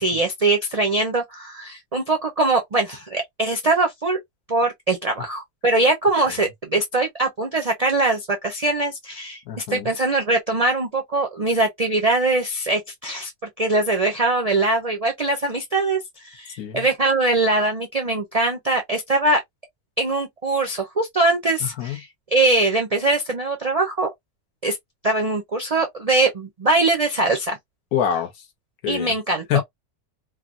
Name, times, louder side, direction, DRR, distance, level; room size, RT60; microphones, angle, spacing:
voice 1, 0.0-4.2 4.5-13.3 13.6-19.4 20.0-24.1 24.6-24.8 25.0-27.6 28.9-29.6, right 2 dB, 60° right, 0.4 m, -22 dB
voice 2, 9.5-9.9 16.6-16.9 21.6-22.0 27.9-28.5 28.8-29.1 29.5-29.6, left 10 dB, 75° left, 1.2 m, -25 dB
3.2 x 2.0 x 2.4 m
omnidirectional pair, 1.6 m